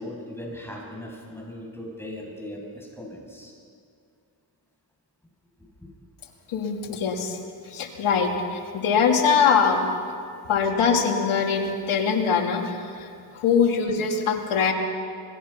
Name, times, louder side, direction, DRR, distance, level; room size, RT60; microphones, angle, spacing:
voice 1, 0.0-3.6 5.8-5.9, left 1 dB, 5° left, -2 dB, 7.7 m, -38 dB
voice 2, 6.5-7.4 7.7-9.8 10.5-13.1 13.3-14.7, left 6 dB, 80° left, 2 dB, 2.7 m, -22 dB
26.0 x 19.5 x 5.9 m, 2.3 s
cardioid pair, 55°, 49 cm